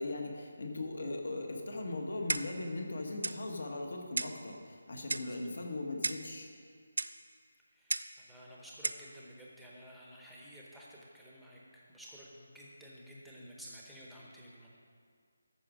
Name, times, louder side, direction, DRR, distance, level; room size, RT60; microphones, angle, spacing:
voice 1, 0.0-6.5, left 2 dB, 60° left, 2 dB, 1.6 m, -39 dB
Clock, 2.3-2.7 3.2-3.4 4.2-4.4 5.1-5.4 6.0-6.3 7.0-7.2 7.9-8.2 8.8-9.1, right 3 dB, 80° right, 0.4 m, -35 dB
voice 2, 7.7-14.7, equal, ahead, -6 dB, 0.9 m, -52 dB
13.5 x 6.1 x 5.1 m, 2.1 s
figure-of-eight pair, 175°, 0 cm